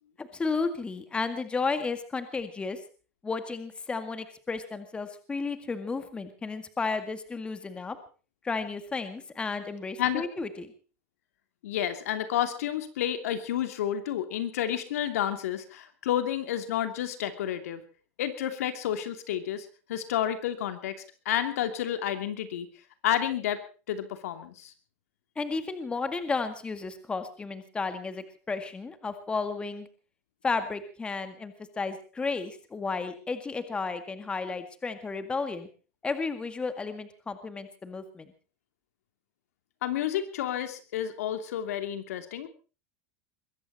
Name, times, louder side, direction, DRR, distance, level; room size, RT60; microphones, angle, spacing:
voice 1, 0.2-2.8 3.2-8.0 8.4-10.7 25.4-29.9 30.4-35.7 36.0-38.3, left 4 dB, 15° left, 10 dB, 2.0 m, -33 dB
voice 2, 11.6-17.8 18.2-21.0 21.2-22.7 23.0-23.6 23.9-24.7 39.8-42.5, left 11 dB, 90° left, 9 dB, 2.9 m, -30 dB
22.0 x 15.5 x 4.2 m, 0.36 s
supercardioid pair, 145°, 8 cm